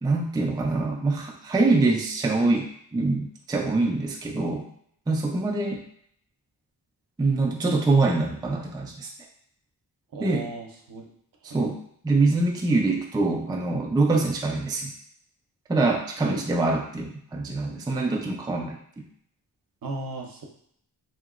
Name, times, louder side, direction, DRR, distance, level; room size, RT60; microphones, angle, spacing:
voice 1, 0.0-4.7 5.1-5.8 7.2-9.1 10.2-10.5 11.4-14.9 15.7-19.0, right 3 dB, 10° right, 0 dB, 0.3 m, -24 dB
voice 2, 10.1-11.0 11.4-11.6 16.2-16.5 19.8-20.5, right 2 dB, 55° right, 1 dB, 0.7 m, -35 dB
2.8 x 2.8 x 2.4 m, 0.66 s
cardioid pair, 70°, 41 cm